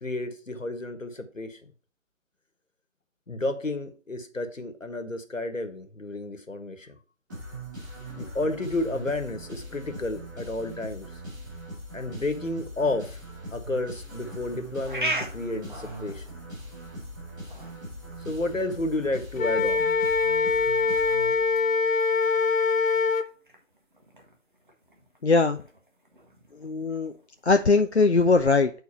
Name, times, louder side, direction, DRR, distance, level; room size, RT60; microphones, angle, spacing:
voice 1, 0.0-1.6 3.3-6.9 8.2-11.1 11.9-13.2 13.5-16.2 18.2-19.9, left 2 dB, 75° left, 7 dB, 1.6 m, -31 dB
sound 1, 7.3-21.9, right 1 dB, 15° right, 2.5 m, -40 dB
sound 2, 14.2-28.3, right 2 dB, 40° right, 1.4 m, -41 dB
Wind instrument woodwind instrument, 19.4-23.3, left 4 dB, 90° left, 0.7 m, -23 dB
voice 2, 25.2-25.6 26.6-27.1 27.5-28.7, left 3 dB, 55° left, 6 dB, 0.5 m, -20 dB
8.5 x 4.5 x 4.2 m, 0.38 s
figure-of-eight pair, 160°, 40 cm